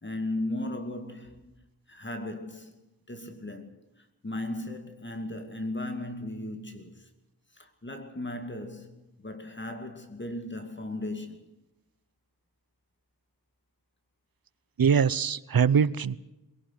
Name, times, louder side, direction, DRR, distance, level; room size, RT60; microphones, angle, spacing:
voice 1, 0.0-1.5 1.9-2.8 3.1-7.1 7.5-11.4 15.7-15.9, left 1 dB, 30° left, 2.3 m, -36 dB
voice 2, 14.8-16.2, right 7 dB, 60° right, 0.8 m, -23 dB
22.0 x 17.5 x 8.1 m
wide cardioid pair, 105°, 40 cm